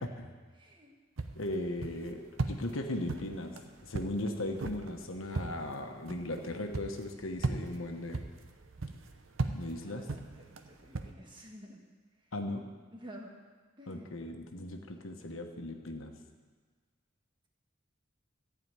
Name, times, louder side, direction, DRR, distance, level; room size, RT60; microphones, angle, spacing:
voice 1, 0.5-0.9 9.7-11.8 12.9-13.4 13.8-14.1, equal, 25° right, 0 dB, 1.5 m, -51 dB
sound 1, 1.2-11.1, right 3 dB, 75° right, 0.8 m, -39 dB
voice 2, 1.3-2.2 2.5-3.5 3.8-8.2 9.5-10.0 12.3-12.6 13.9-16.1, left 1 dB, 85° left, 4 dB, 1.2 m, -37 dB
14.5 x 4.9 x 9.0 m, 1.5 s
head